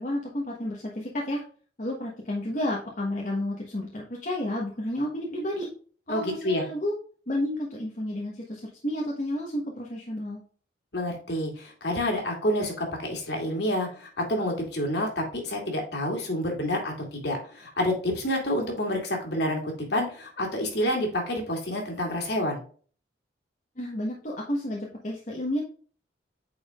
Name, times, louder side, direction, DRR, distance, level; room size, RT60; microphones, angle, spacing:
voice 1, 0.0-1.4 1.8-5.7 6.1-6.9 7.3-10.4 23.8-25.6, left 1 dB, 45° left, -2 dB, 1.3 m, -31 dB
voice 2, 6.1-6.6 10.9-22.6, left 1 dB, 65° left, 1 dB, 2.6 m, -28 dB
8.9 x 4.8 x 2.4 m, 0.42 s
head